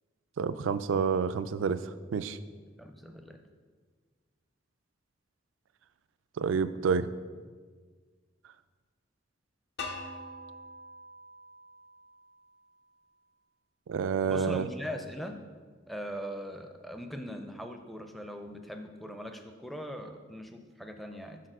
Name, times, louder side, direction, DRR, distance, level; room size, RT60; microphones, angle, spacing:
voice 1, 0.4-1.8 2.1-2.4 6.4-7.1 13.9-14.6, right 6 dB, 85° right, 13 dB, 0.3 m, -28 dB
voice 2, 2.8-3.4 14.3-15.4 15.9-21.4, equal, ahead, 5 dB, 0.4 m, -40 dB
sound 1, 9.8-12.7, left 2 dB, 60° left, 0.8 m, -44 dB
6.6 x 4.1 x 6.1 m, 1.5 s
head